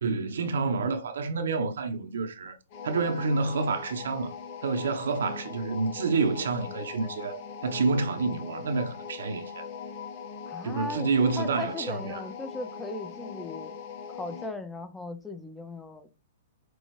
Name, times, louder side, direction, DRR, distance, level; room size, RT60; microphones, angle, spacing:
voice 1, 0.0-2.6 2.8-4.3 4.6-9.7 10.6-12.2, right 4 dB, 75° right, 1.0 m, -28 dB
sound 1, 2.7-14.6, left 6 dB, 45° left, 1.0 m, -41 dB
voice 2, 10.5-11.1 11.4-13.7 14.1-16.2, left 2 dB, 5° left, 0.5 m, -37 dB
6.2 x 2.4 x 3.1 m
hypercardioid pair, 130°, 0 cm